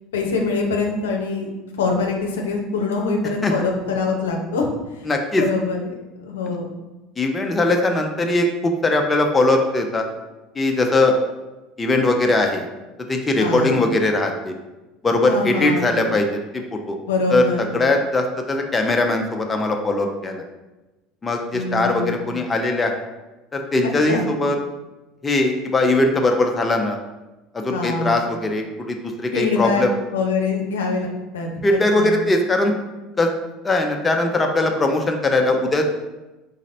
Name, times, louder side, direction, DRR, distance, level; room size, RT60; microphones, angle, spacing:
voice 1, 0.1-1.5 1.8-5.1 5.4-6.7 13.4-13.8 15.2-16.0 17.1-17.7 21.5-22.3 23.8-24.3 27.7-28.2 29.3-29.8 30.1-32.2, left 3 dB, 80° left, 1 dB, 0.6 m, -24 dB
voice 2, 5.1-5.4 7.2-10.1 10.5-11.1 11.8-12.7 13.1-14.5 15.0-16.4 16.7-17.0 17.3-17.4 17.7-20.4 21.2-22.9 23.5-24.6 25.2-27.0 27.5-29.9 31.6-32.7 33.2-33.3 33.6-35.8, left 2 dB, 20° left, 3 dB, 0.6 m, -20 dB
4.0 x 4.0 x 2.6 m, 1.1 s
hypercardioid pair, 75°, 0 cm